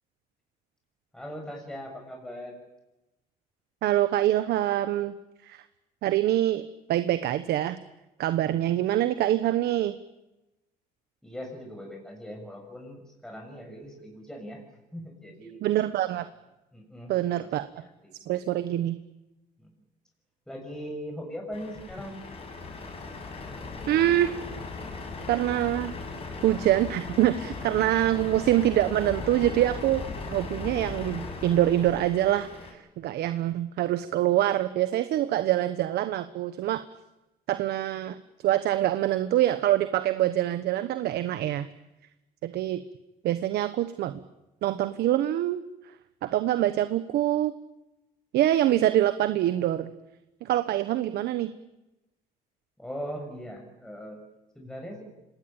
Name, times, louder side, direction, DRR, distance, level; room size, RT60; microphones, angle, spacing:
voice 1, 1.1-2.6 11.2-15.6 16.7-17.1 17.4-18.4 19.6-19.7 20.5-22.2 52.8-54.2 54.5-55.0, equal, 5° left, 1 dB, 6.7 m, -40 dB
voice 2, 3.8-5.2 5.4-5.6 6.0-7.8 8.2-10.0 15.6-16.3 17.1-17.7 18.3-19.0 23.9-24.3 25.3-25.9 26.4-36.8 37.5-38.2 38.4-41.7 42.4-42.8 43.2-44.2 44.6-45.6 46.2-47.5 48.3-49.9 50.4-51.5, right 13 dB, 75° right, 11 dB, 1.2 m, -25 dB
Truck, 21.5-32.7, left 4 dB, 35° left, 6.9 m, -38 dB
26.5 x 19.5 x 9.0 m, 0.97 s
cardioid pair, 110°, 17 cm